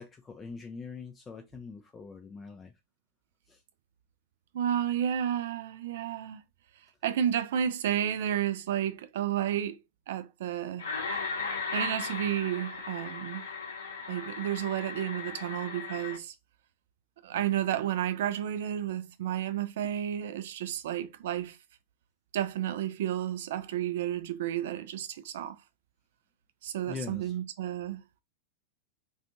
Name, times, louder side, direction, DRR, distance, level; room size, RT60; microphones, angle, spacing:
voice 1, 0.0-2.7 3.5-3.6 26.8-27.3, left 5 dB, 20° left, 0.3 m, -43 dB
voice 2, 4.5-6.4 7.0-9.8 10.1-10.9 11.7-13.5 14.1-16.3 17.2-21.6 22.3-25.6 26.6-28.0, right 10 dB, 55° right, 0.3 m, -31 dB
sound 1, 10.8-16.2, left 4 dB, 70° left, 0.7 m, -37 dB
2.4 x 2.3 x 2.8 m
figure-of-eight pair, 90°, 0 cm